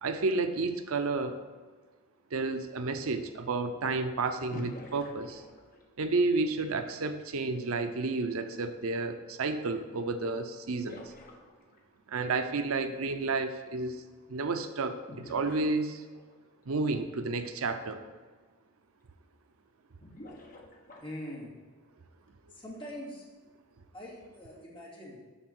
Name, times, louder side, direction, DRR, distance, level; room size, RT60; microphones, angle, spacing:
voice 1, 0.0-1.4 2.3-5.4 6.0-11.0 12.1-14.0 14.3-15.0 15.2-16.0 16.7-18.0, right 3 dB, 75° right, 8 dB, 0.6 m, -31 dB
sound 1, 4.5-6.0 9.9-10.0 10.8-11.9 15.1-16.4 17.7-17.8 18.2-18.3 20.0-21.3, left 1 dB, 40° left, 1.1 m, -47 dB
voice 2, 21.0-21.5 22.5-23.2 23.9-25.2, left 1 dB, 25° left, -6 dB, 2.5 m, -43 dB
8.2 x 6.1 x 6.0 m, 1.4 s
head